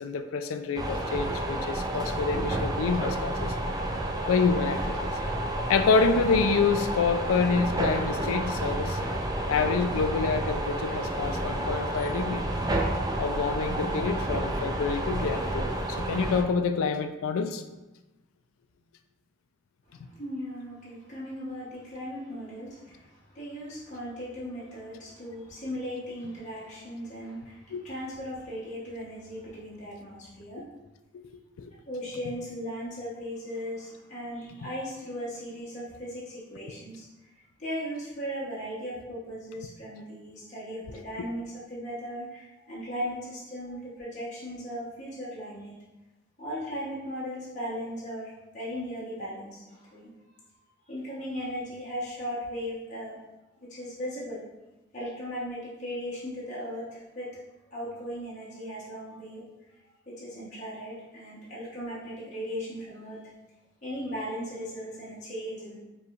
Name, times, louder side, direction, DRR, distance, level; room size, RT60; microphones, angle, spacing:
voice 1, 0.0-3.5 4.3-5.1 5.7-9.0 9.5-12.4 13.2-15.7 16.0-17.6 27.7-27.8 31.6-31.7, left 4 dB, 85° left, 8 dB, 0.4 m, -27 dB
sound 1, 0.8-16.4, right 1 dB, 20° right, 0.3 m, -30 dB
voice 2, 19.9-30.7 31.9-45.7 46.4-50.1 50.9-53.2 53.7-54.5 54.9-57.3 57.7-59.4 59.8-63.2 63.8-65.8, equal, 35° left, -9 dB, 1.0 m, -37 dB
4.8 x 3.1 x 2.4 m, 1.1 s
head